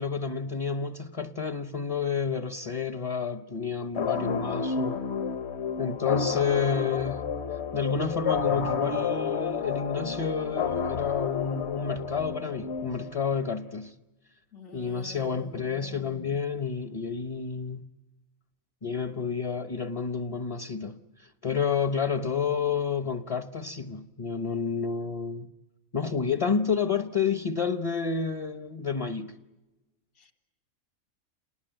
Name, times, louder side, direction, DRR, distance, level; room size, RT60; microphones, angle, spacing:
voice 1, 0.0-5.0 5.8-7.3 7.7-13.9 14.7-17.9 18.8-25.5 25.9-29.4, left 6 dB, 30° left, 0.8 m, -30 dB
sound 1, 4.0-13.4, left 6 dB, 55° left, 1.3 m, -30 dB
voice 2, 14.5-15.6 30.2-30.3, left 3 dB, 75° left, 2.6 m, -47 dB
28.5 x 20.0 x 9.0 m
omnidirectional pair, 1.4 m